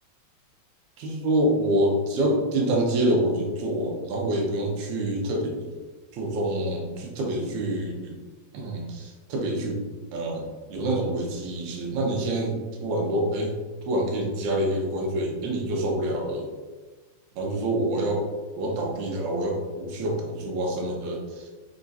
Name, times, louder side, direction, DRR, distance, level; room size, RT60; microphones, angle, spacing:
voice 1, 1.0-5.7 6.1-8.2 8.5-9.8 10.1-13.6 13.9-16.5 17.4-18.3 18.6-21.5, right 1 dB, 80° right, 0 dB, 2.2 m, -26 dB
4.9 x 3.5 x 2.7 m, 1.3 s
omnidirectional pair, 3.4 m